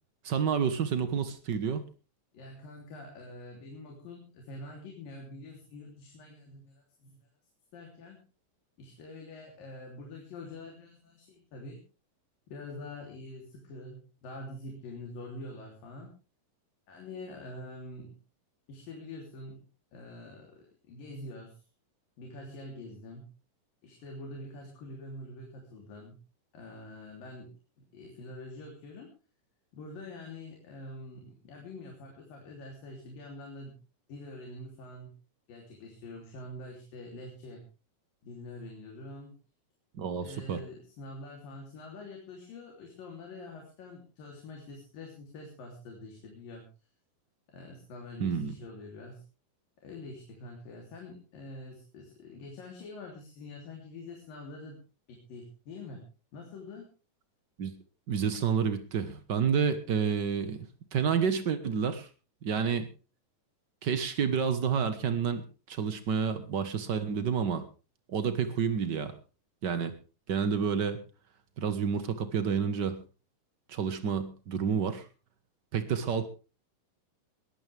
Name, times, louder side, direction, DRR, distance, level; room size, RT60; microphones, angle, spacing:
voice 1, 0.2-1.8 40.0-40.6 48.2-48.5 57.6-57.7 58.1-60.7 60.9-62.1 62.4-62.9 63.8-67.6 68.1-69.1 69.6-69.9 70.3-71.0 71.6-73.0 73.7-75.1 75.7-76.3, right 6 dB, 75° right, 9 dB, 1.0 m, -29 dB
voice 2, 2.3-7.2 7.7-8.2 8.8-11.8 12.5-16.1 16.9-18.2 18.7-19.6 19.9-21.6 22.2-23.3 23.8-26.2 26.5-27.5 27.9-29.1 29.7-33.8 34.1-35.1 35.5-37.6 38.2-39.4 40.2-46.7 47.5-49.2 49.8-54.8 55.1-56.0 56.3-56.9, left 2 dB, 75° left, 0 dB, 4.9 m, -45 dB
20.5 x 14.5 x 3.5 m, 0.34 s
omnidirectional pair, 4.1 m